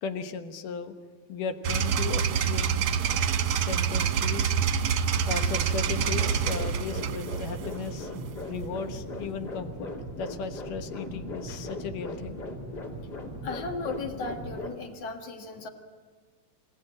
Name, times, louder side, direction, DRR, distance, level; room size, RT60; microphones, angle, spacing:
voice 1, 0.0-0.9 1.3-2.7 3.1-4.5 5.3-8.1 8.5-12.4, left 5 dB, 75° left, 8 dB, 2.8 m, -36 dB
sound 1, 1.6-8.6, right 7 dB, 65° right, 1.6 m, -27 dB
sound 2, 5.9-14.7, left 1 dB, 30° left, 2.8 m, -38 dB
voice 2, 13.4-15.7, left 3 dB, 50° left, 5 dB, 2.5 m, -35 dB
27.0 x 17.0 x 8.8 m, 1.5 s
omnidirectional pair, 3.9 m